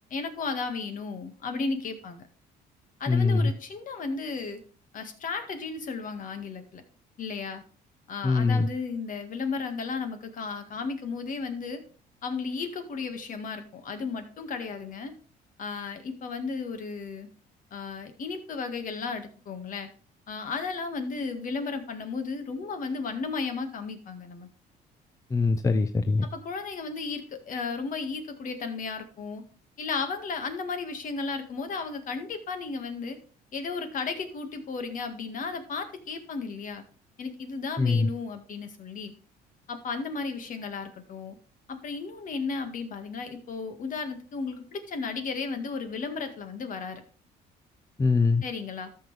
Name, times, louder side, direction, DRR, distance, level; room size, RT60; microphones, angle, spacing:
voice 1, 0.1-2.3 3.0-4.6 4.9-6.8 7.2-7.6 8.1-11.8 12.2-15.1 15.6-17.3 17.7-19.9 20.3-24.5 26.3-29.4 29.8-33.2 33.5-36.8 37.2-39.1 39.7-41.4 41.7-47.0 48.4-48.9, left 4 dB, 50° left, 7 dB, 1.8 m, -34 dB
voice 2, 3.1-3.5 8.2-8.7 25.3-26.3 37.8-38.1 48.0-48.4, left 3 dB, 20° left, 9 dB, 0.6 m, -23 dB
13.0 x 6.2 x 3.4 m, 0.41 s
cardioid pair, 110°, 17 cm